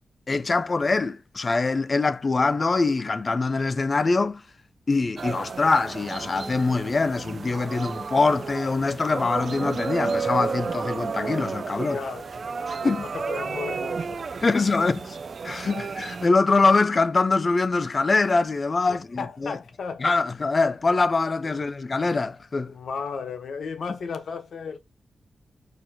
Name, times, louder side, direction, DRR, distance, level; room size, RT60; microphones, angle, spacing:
voice 1, 0.3-4.4 4.9-12.0 12.7-13.0 14.4-15.0 15.4-19.5 20.0-22.7, left 3 dB, 35° left, 0.4 m, -23 dB
sound 1, 5.2-16.3, right 5 dB, 45° right, 0.3 m, -32 dB
voice 2, 11.8-12.5 12.8-14.3 14.5-14.6 15.7-15.9 18.9-20.8 21.4-21.6 22.7-24.8, left 5 dB, 65° left, 0.9 m, -35 dB
4.5 x 4.4 x 2.7 m
wide cardioid pair, 140°, 0 cm